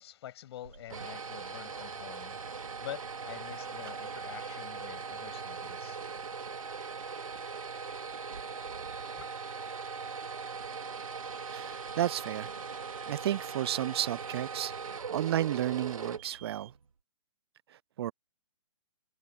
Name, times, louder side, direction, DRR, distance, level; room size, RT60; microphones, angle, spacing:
voice 1, 0.0-2.4 2.8-6.0 9.2-9.3, left 12 dB, 50° left, 7.6 m, -46 dB
sound 1, 0.6-16.8, right 5 dB, 80° right, 2.9 m, -40 dB
voice 2, 11.5-12.5 13.1-16.7 18.0-18.1, right 12 dB, 50° right, 0.6 m, -32 dB
figure-of-eight pair, 125°, 17 cm